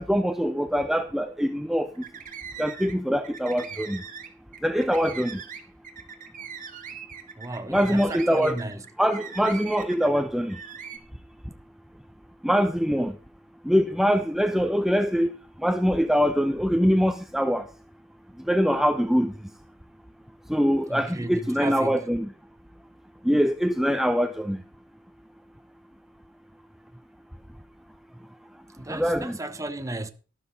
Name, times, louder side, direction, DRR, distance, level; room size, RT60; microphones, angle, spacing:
voice 1, 0.0-1.9 2.6-4.0 4.6-5.4 7.7-8.6 9.0-10.6 12.4-13.1 13.7-15.3 15.6-17.6 18.5-19.3 20.5-22.3 23.2-24.6 28.9-29.4, equal, ahead, 0.6 m, -23 dB
sound 1, 1.9-3.0 3.2-10.2 10.5-11.0, right 7 dB, 45° right, 2.0 m, -40 dB
voice 2, 7.4-8.8 20.9-22.0 28.8-30.1, right 2 dB, 15° right, 1.0 m, -34 dB
13.0 x 12.0 x 4.0 m
head